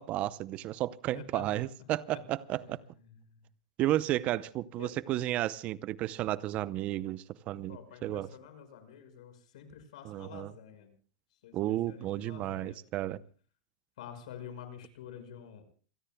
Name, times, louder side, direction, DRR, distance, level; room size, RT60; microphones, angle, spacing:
voice 1, 0.0-2.8 3.8-8.3 10.0-10.5 11.5-13.2, right 14 dB, 35° right, 0.6 m, -33 dB
voice 2, 1.1-1.6 2.1-2.2 3.1-3.2 4.8-4.9 7.7-10.9 11.4-12.8 14.0-15.6, left 8 dB, 70° left, 5.6 m, -48 dB
28.0 x 18.0 x 2.2 m
supercardioid pair, 140°, 4 cm